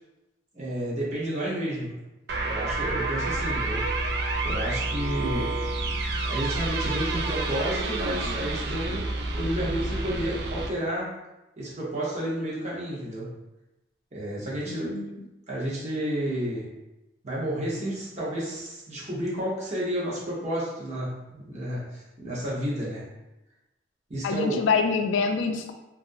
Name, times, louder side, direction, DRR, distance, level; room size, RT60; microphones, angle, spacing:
voice 1, 0.5-2.0 2.4-3.9 4.4-5.6 6.2-11.1 11.6-13.3 14.1-15.0 15.5-16.7 17.2-23.1 24.1-24.6, right 1 dB, 35° right, -6 dB, 0.8 m, -31 dB
sound 1, 2.3-10.7, right 2 dB, 60° right, 0.3 m, -29 dB
voice 2, 14.7-15.0 24.2-25.7, left 5 dB, 85° left, 6 dB, 0.3 m, -25 dB
2.9 x 2.4 x 2.6 m, 0.96 s
head